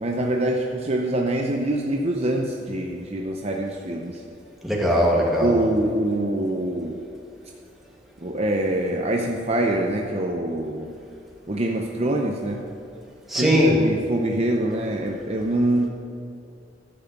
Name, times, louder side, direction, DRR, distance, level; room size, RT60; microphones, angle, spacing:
voice 1, 0.0-4.2 5.4-7.0 8.2-10.9 11.5-12.6 13.3-15.9, right 1 dB, 35° right, 1 dB, 0.7 m, -25 dB
voice 2, 4.6-5.5 13.3-13.8, equal, ahead, -4 dB, 2.1 m, -19 dB
14.0 x 5.8 x 8.1 m, 2.6 s
head